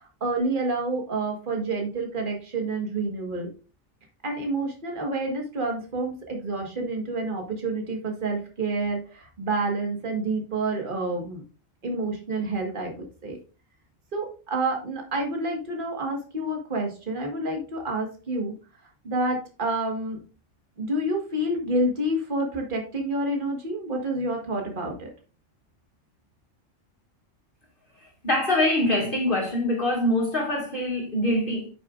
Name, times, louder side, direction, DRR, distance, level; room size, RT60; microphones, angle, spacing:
voice 1, 0.0-3.5 4.2-11.4 11.8-13.4 14.1-18.5 19.0-20.2 20.8-25.1, right 2 dB, 40° right, 1.9 m, -28 dB
voice 2, 28.2-31.7, left 1 dB, 40° left, 2.3 m, -24 dB
8.7 x 6.9 x 2.5 m
omnidirectional pair, 1.3 m